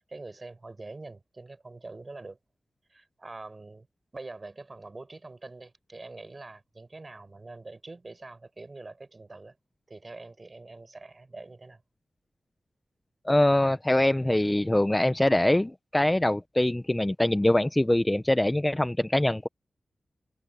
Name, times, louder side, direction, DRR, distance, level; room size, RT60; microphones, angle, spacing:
voice 1, 0.0-2.4 2.9-3.9 4.1-9.6 9.9-11.8, right 3 dB, 35° right, 5.7 m, -44 dB
voice 2, 13.2-19.5, left 1 dB, 15° left, 0.7 m, -23 dB
cardioid pair, 70°, 0 cm